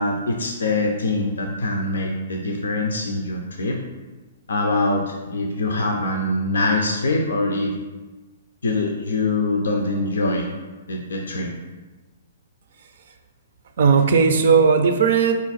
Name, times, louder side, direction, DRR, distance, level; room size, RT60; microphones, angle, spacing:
voice 1, 0.0-3.8 4.5-7.7 8.6-10.5 10.9-11.5, left 2 dB, 80° left, 2 dB, 0.4 m, -23 dB
voice 2, 12.8-13.1 13.8-15.3, right 5 dB, 65° right, 6 dB, 0.5 m, -17 dB
4.0 x 2.5 x 4.0 m, 1.2 s
hypercardioid pair, 130°, 0 cm